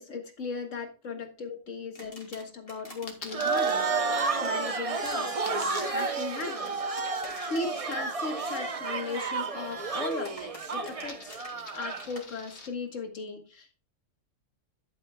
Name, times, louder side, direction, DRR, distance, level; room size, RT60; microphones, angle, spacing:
voice 1, 0.0-3.8 4.4-6.7 7.4-11.4 11.7-13.8, left 4 dB, 75° left, 4 dB, 2.0 m, -37 dB
sound 1, 1.9-3.1 3.5-8.0 8.2-8.5 9.9-12.2, equal, 25° left, 2.5 m, -48 dB
Coin (dropping), 3.1-3.8 5.5-7.8 9.7-10.3 10.6-12.7, left 3 dB, 60° left, 1.7 m, -47 dB
sound 2, 3.3-12.1, right 4 dB, 30° right, 0.8 m, -31 dB
10.5 x 9.3 x 2.3 m, 0.32 s
omnidirectional pair, 1.3 m